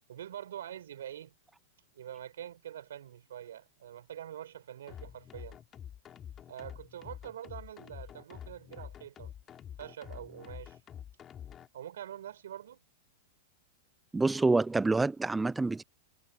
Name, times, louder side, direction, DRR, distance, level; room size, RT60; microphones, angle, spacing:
voice 1, 0.1-1.3 1.9-5.6 6.5-9.3 9.8-10.8 11.7-12.8, right 10 dB, 80° right, 6.4 m, -45 dB
sound 1, 4.9-11.7, left 9 dB, 25° left, 6.4 m, -47 dB
voice 2, 14.1-15.8, right 3 dB, 10° right, 0.5 m, -27 dB
hypercardioid pair, 125°, 0 cm